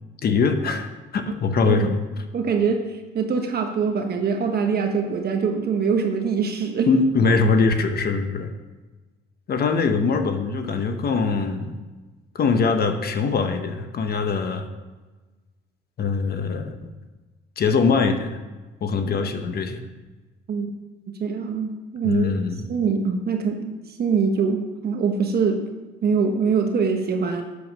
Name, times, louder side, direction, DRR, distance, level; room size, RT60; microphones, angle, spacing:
voice 1, 0.2-2.0 6.9-8.5 9.5-11.7 12.3-14.6 16.0-16.9 17.6-18.4 18.8-19.8 22.0-22.7, left 4 dB, 50° left, 7 dB, 1.1 m, -22 dB
voice 2, 2.3-6.9 20.5-20.7 21.1-22.3 22.7-23.7 24.0-25.6 26.0-27.4, right 5 dB, 50° right, 4 dB, 1.1 m, -23 dB
8.4 x 7.2 x 6.1 m, 1.2 s
cardioid pair, 105°, 20 cm